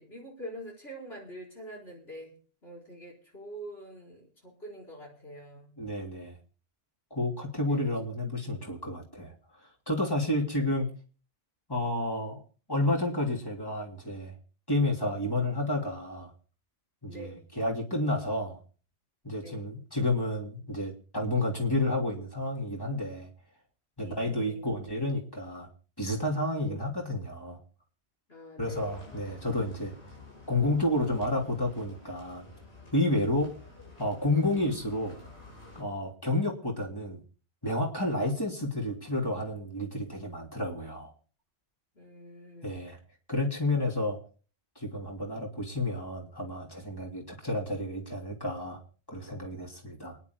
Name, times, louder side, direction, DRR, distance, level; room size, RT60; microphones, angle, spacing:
voice 1, 0.0-2.4 2.6-5.7 7.7-8.0 17.1-17.4 19.4-19.6 24.0-24.6 26.6-26.8 28.3-29.1 41.9-42.7, equal, 65° left, -1 dB, 4.6 m, -45 dB
voice 2, 5.8-6.3 7.1-9.3 9.9-10.9 11.7-12.4 12.7-14.3 14.7-16.3 17.0-17.3 17.5-18.6 19.2-23.3 24.0-25.7 26.0-27.6 28.6-29.9 30.5-32.4 32.9-33.5 34.0-35.1 35.7-37.2 37.6-41.1 42.6-43.0 43.3-44.2 44.7-48.8 49.1-50.2, left 1 dB, 20° left, -1 dB, 3.2 m, -30 dB
sound 1, 28.6-35.8, left 2 dB, 85° left, 6.4 m, -50 dB
28.5 x 10.5 x 2.2 m, 0.38 s
omnidirectional pair, 1.1 m